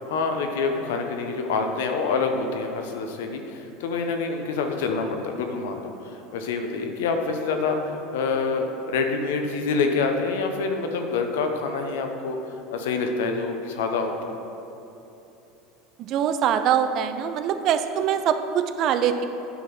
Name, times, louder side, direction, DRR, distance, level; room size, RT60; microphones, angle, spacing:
voice 1, 0.0-12.4 12.7-14.3, left 4 dB, 80° left, 5 dB, 0.8 m, -26 dB
voice 2, 16.0-19.2, right 8 dB, 50° right, 9 dB, 0.5 m, -23 dB
9.4 x 3.7 x 5.9 m, 2.9 s
hypercardioid pair, 95°, 0 cm